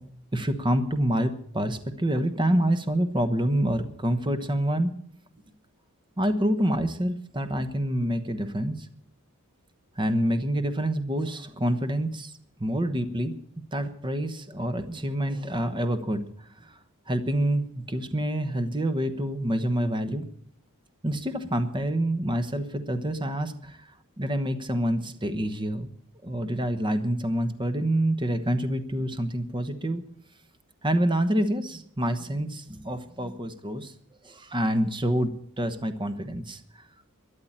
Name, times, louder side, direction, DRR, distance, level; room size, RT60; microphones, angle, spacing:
voice 1, 0.3-4.9 6.2-8.9 10.0-12.3 12.6-13.3 13.7-16.2 16.6-16.7 17.1-20.2 21.0-23.8 24.2-25.9 26.2-30.0 30.8-33.9 34.2-35.3 35.6-36.6, right 1 dB, 20° right, 9 dB, 1.1 m, -27 dB
13.0 x 10.5 x 8.7 m, 0.64 s
head